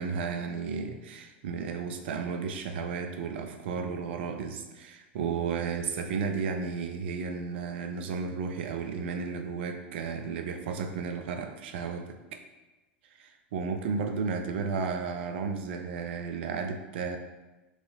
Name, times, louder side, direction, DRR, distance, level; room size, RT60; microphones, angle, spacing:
voice 1, 0.0-12.4 13.1-17.2, right 5 dB, 70° right, 6 dB, 0.4 m, -33 dB
3.1 x 2.7 x 2.8 m, 1.1 s
hypercardioid pair, 95°, 6 cm